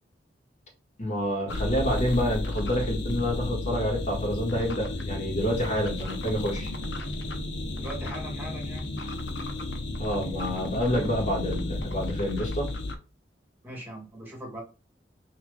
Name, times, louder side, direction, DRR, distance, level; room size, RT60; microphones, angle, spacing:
voice 1, 1.0-6.7 10.0-12.7, equal, 40° left, -1 dB, 1.6 m, -28 dB
sound 1, 1.5-13.0, left 2 dB, 75° left, 0.7 m, -33 dB
voice 2, 7.8-8.9 13.6-14.6, right 1 dB, 10° right, -2 dB, 1.6 m, -39 dB
5.6 x 3.1 x 2.3 m, 0.32 s
head